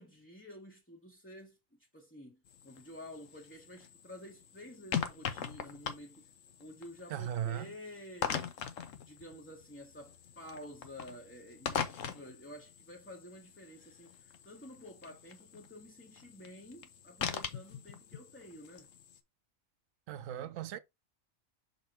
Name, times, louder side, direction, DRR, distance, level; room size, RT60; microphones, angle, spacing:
voice 1, 0.0-1.6 1.9-6.2 6.6-8.6 9.0-18.9, left 1 dB, 10° left, 1.0 m, -50 dB
sound 1, 2.5-19.2, left 8 dB, 75° left, 1.2 m, -42 dB
voice 2, 7.1-7.7 20.1-20.8, right 10 dB, 90° right, 1.0 m, -37 dB
6.4 x 3.5 x 4.3 m
omnidirectional pair, 1.3 m